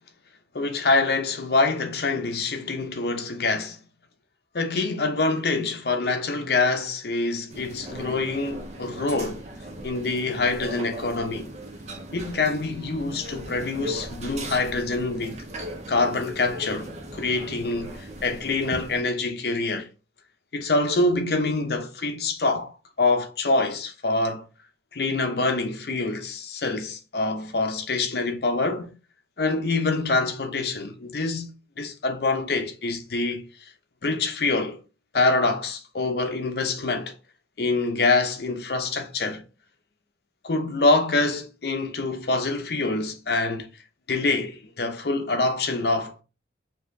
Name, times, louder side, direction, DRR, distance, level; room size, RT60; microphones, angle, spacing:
voice 1, 0.5-3.8 4.5-9.4 9.8-11.5 12.1-15.4 15.9-19.9 20.5-24.4 24.9-28.9 29.4-33.5 34.0-34.8 35.1-37.2 37.6-39.5 40.4-43.7 44.1-46.2, left 3 dB, 60° left, 0.6 m, -25 dB
sound 1, 7.5-19.0, right 1 dB, 40° right, 0.6 m, -38 dB
4.6 x 2.7 x 2.6 m
head